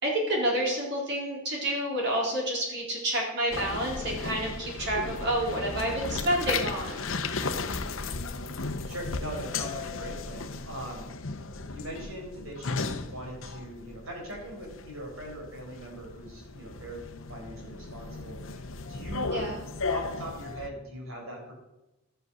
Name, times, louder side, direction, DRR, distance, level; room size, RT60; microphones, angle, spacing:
voice 1, 0.0-7.1 19.3-19.7, right 1 dB, 55° right, -2 dB, 3.9 m, -29 dB
sound 1, 3.5-20.7, left 4 dB, 70° left, 0.9 m, -35 dB
voice 2, 8.8-11.4 11.7-19.5 19.9-21.5, right 1 dB, 85° right, -1 dB, 5.0 m, -41 dB
12.0 x 8.0 x 6.3 m, 0.95 s
head